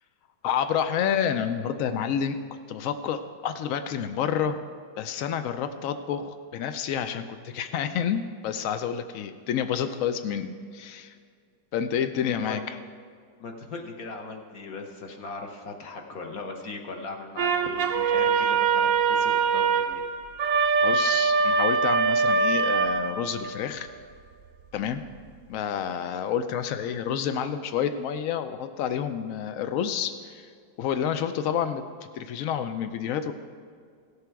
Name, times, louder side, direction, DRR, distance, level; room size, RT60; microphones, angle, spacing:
voice 1, 0.4-2.4 2.7-4.6 5.0-11.2 11.7-12.8 20.8-23.9 24.7-25.0 25.5-30.5 30.8-31.8 32.1-33.3, left 8 dB, 90° left, 9 dB, 0.7 m, -29 dB
voice 2, 13.4-20.0, left 3 dB, 55° left, 3 dB, 1.3 m, -39 dB
sound 1, 17.4-23.6, right 5 dB, 60° right, 0.9 m, -23 dB
16.0 x 6.8 x 4.6 m, 2.1 s
omnidirectional pair, 2.0 m